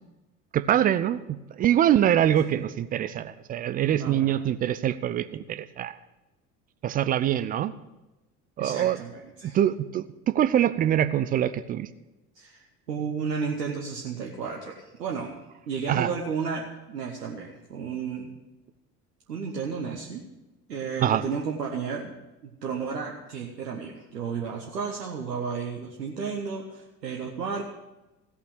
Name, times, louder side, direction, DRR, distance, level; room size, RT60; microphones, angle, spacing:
voice 1, 0.5-1.2 1.6-6.0 6.8-7.7 8.6-9.0 9.5-11.9 15.9-16.1 21.0-21.2, right 11 dB, 20° right, 13 dB, 0.3 m, -24 dB
voice 2, 3.9-4.4 8.6-9.6 12.3-15.4 15.7-18.3 19.3-20.2 20.7-22.1 22.4-27.6, right 5 dB, 80° right, 0 dB, 1.2 m, -33 dB
16.0 x 5.7 x 8.6 m, 1.0 s
figure-of-eight pair, 65°, 48 cm